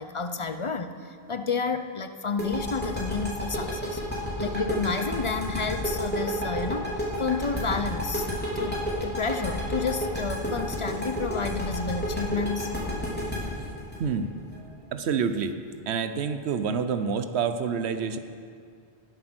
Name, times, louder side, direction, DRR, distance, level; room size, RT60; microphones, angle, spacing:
voice 1, 0.0-6.9 7.2-8.3 8.6-12.7, left 4 dB, 40° left, 9 dB, 0.5 m, -30 dB
sound 1, 2.4-15.1, equal, 10° left, 3.5 m, -30 dB
voice 2, 14.0-15.6 15.9-18.2, right 6 dB, 85° right, 9 dB, 1.0 m, -28 dB
19.0 x 7.9 x 6.2 m, 2.3 s
omnidirectional pair, 1.1 m